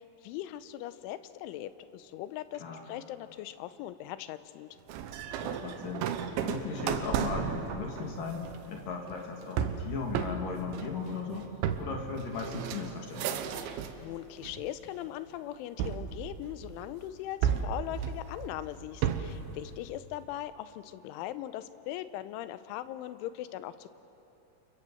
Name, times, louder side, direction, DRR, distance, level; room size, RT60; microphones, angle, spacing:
voice 1, 0.0-4.7 13.6-23.9, left 13 dB, 85° left, 13 dB, 3.2 m, -40 dB
sound 1, 4.9-14.0 14.4-15.1 15.8-16.9 17.4-19.5, right 8 dB, 80° right, 3.3 m, -34 dB
voice 2, 5.4-11.5 11.8-13.6, left 4 dB, 50° left, 1 dB, 3.8 m, -37 dB
29.5 x 25.5 x 7.8 m, 3.0 s
omnidirectional pair, 5.4 m